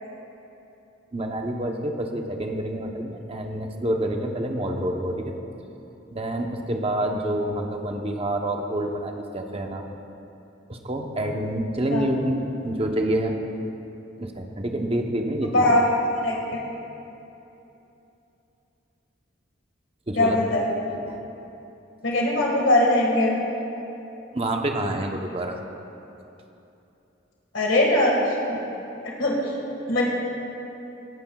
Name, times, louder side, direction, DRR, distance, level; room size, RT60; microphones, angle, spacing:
voice 1, 1.1-5.3 6.1-9.8 10.7-13.3 14.2-15.7 20.1-20.4 20.9-21.2 24.3-25.5, right 1 dB, 30° right, 3 dB, 0.8 m, -27 dB
voice 2, 15.5-15.8 16.2-16.4 20.2-20.7 22.0-23.4 27.5-28.1 28.5-28.6 29.2-29.4 29.9-30.0, left 1 dB, 75° left, -2 dB, 1.7 m, -20 dB
18.5 x 13.0 x 2.3 m, 2.9 s
head